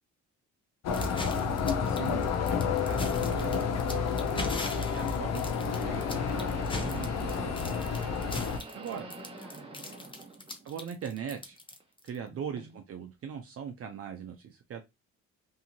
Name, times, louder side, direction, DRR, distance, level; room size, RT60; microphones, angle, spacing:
sound 1, 0.8-8.6, left 6 dB, 60° left, 0.6 m, -30 dB
sound 2, 0.9-12.2, left 2 dB, 15° left, 0.6 m, -40 dB
voice 1, 0.9-3.7 4.3-7.8 8.7-9.1 10.6-11.6 12.0-14.8, right 7 dB, 50° right, 0.6 m, -41 dB
sound 3, 3.5-3.6 5.6-10.7 11.0-11.8 12.6-12.7 13.7-13.8, right 3 dB, 20° right, 0.8 m, -47 dB
voice 2, 9.0-10.4 12.3-12.8, left 2 dB, ahead, 1.3 m, -51 dB
2.7 x 2.4 x 2.8 m
cardioid pair, 90°, 30 cm